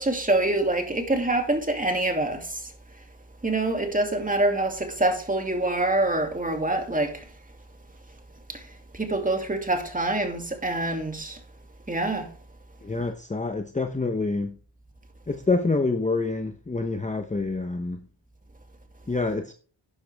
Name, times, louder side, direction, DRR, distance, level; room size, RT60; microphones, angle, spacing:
voice 1, 0.0-2.5 3.4-7.2 8.5-8.6 8.9-11.4 11.9-12.3, right 2 dB, 20° right, 2.5 m, -25 dB
voice 2, 12.8-14.6 15.3-18.1 19.1-19.5, left 3 dB, 15° left, 0.9 m, -27 dB
12.0 x 9.8 x 3.4 m
wide cardioid pair, 95°, 44 cm